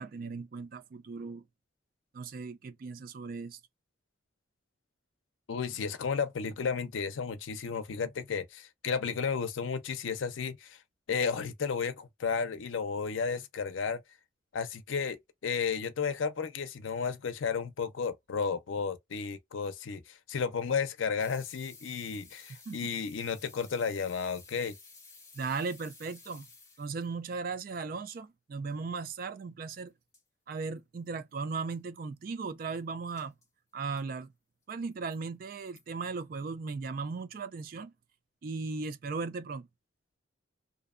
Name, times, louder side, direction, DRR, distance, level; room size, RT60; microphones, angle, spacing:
voice 1, 0.0-1.4 2.1-3.6 22.7-22.9 25.3-26.5 26.8-29.9 30.5-33.3 33.7-34.3 34.7-37.9 38.4-39.7, right 4 dB, 50° right, 0.3 m, -37 dB
voice 2, 5.5-10.8 11.1-14.0 14.5-24.8, left 6 dB, 85° left, 0.5 m, -33 dB
sound 1, 21.2-27.1 29.9-30.0 30.1-30.2 30.8-30.9 31.0-31.1 31.6-31.8 33.2-33.5 34.0-34.1 34.7-35.2 35.8-35.9, left 4 dB, 15° left, 1.0 m, -55 dB
2.6 x 2.1 x 2.4 m
head